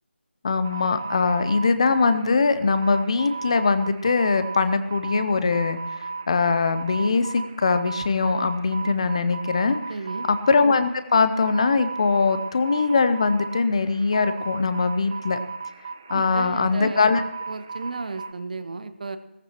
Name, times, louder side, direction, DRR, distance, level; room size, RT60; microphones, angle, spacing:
voice 1, 0.4-9.8 10.2-15.4 16.1-17.2, left 4 dB, 30° left, 11 dB, 0.7 m, -22 dB
sound 1, 0.6-18.3, right 4 dB, 20° right, 0.4 m, -36 dB
voice 2, 9.9-10.3 16.1-17.0 17.5-19.2, right 3 dB, 40° right, 11 dB, 1.0 m, -33 dB
18.0 x 15.0 x 3.0 m, 0.98 s
figure-of-eight pair, 160°, 7 cm